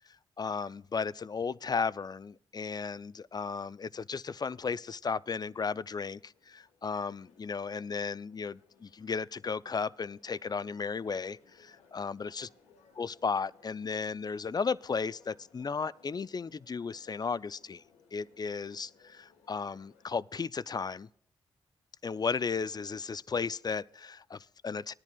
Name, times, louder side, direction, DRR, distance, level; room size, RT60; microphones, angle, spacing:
voice 1, 0.4-12.5 13.0-17.8 18.1-21.1 22.0-24.9, left 5 dB, 35° left, 0.5 m, -35 dB
sound 1, 5.3-20.1, left 5 dB, 85° left, 1.4 m, -64 dB
20.0 x 10.5 x 2.3 m
hypercardioid pair, 40°, 11 cm